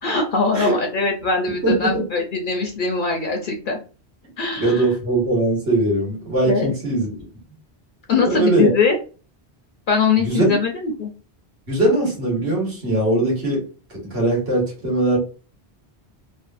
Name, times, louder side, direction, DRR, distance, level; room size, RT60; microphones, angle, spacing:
voice 1, 0.0-3.8 4.4-4.8 6.4-6.7 8.1-9.0 9.9-11.1, left 4 dB, 55° left, 3 dB, 0.7 m, -21 dB
voice 2, 1.6-1.9 4.6-7.1 8.1-8.7 10.2-10.6 11.7-13.6 13.9-15.2, right 1 dB, 60° right, -3 dB, 1.7 m, -20 dB
3.5 x 2.0 x 2.4 m, 0.36 s
omnidirectional pair, 1.1 m